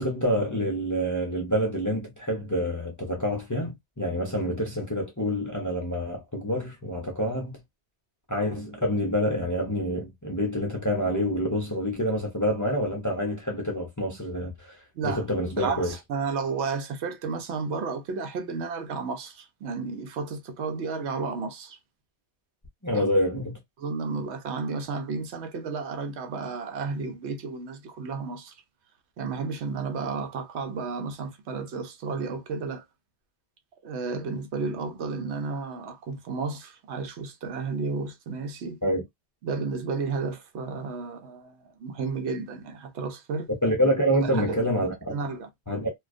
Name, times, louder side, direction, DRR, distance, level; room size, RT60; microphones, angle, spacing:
voice 1, 0.0-7.6 8.3-14.8 15.0-15.9 22.8-23.6 38.8-39.0 43.6-45.1 45.7-45.9, equal, 25° left, 0.4 m, -27 dB
voice 2, 15.6-21.8 22.9-23.0 23.8-28.5 29.2-32.8 33.8-38.8 39.4-43.5 44.1-44.6 45.1-45.5, right 4 dB, 80° right, 0.9 m, -32 dB
2.3 x 2.3 x 2.4 m
omnidirectional pair, 1.1 m